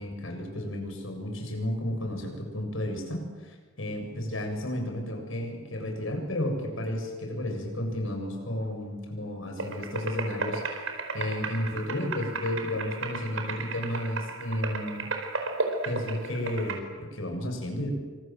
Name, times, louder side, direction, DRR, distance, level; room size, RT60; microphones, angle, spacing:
voice 1, 0.0-10.7 11.1-15.1 15.8-17.9, left 1 dB, 80° left, 4 dB, 7.4 m, -32 dB
sound 1, 9.6-16.8, right 3 dB, 80° right, 4.8 m, -34 dB
28.0 x 26.0 x 7.7 m, 1.3 s
head